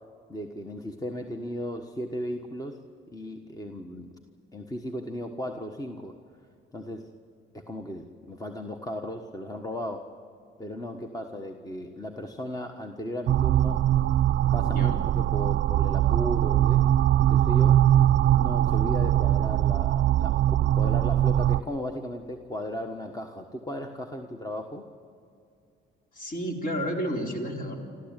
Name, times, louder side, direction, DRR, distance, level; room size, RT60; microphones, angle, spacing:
voice 1, 0.3-2.8 3.1-4.1 4.5-6.1 6.7-7.1 7.5-10.1 10.6-13.8 14.5-16.9 17.2-17.9 18.3-24.9, equal, 20° left, 5 dB, 1.4 m, -36 dB
sound 1, 13.3-21.6, right 12 dB, 65° right, 0.5 m, -22 dB
voice 2, 14.7-15.0 26.1-27.8, equal, 45° left, 2 dB, 4.0 m, -31 dB
27.0 x 14.0 x 9.1 m, 2.4 s
cardioid pair, 90°, 20 cm